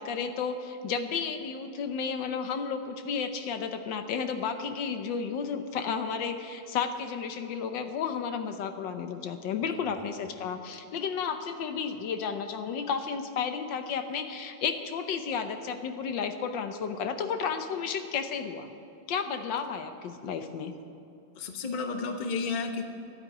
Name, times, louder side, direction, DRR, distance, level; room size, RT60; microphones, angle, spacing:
voice 1, 0.0-18.7 19.1-20.7, left 6 dB, 75° left, 8 dB, 1.5 m, -32 dB
voice 2, 21.3-22.8, left 4 dB, 30° left, 5 dB, 0.9 m, -32 dB
12.0 x 8.9 x 9.8 m, 2.6 s
omnidirectional pair, 2.1 m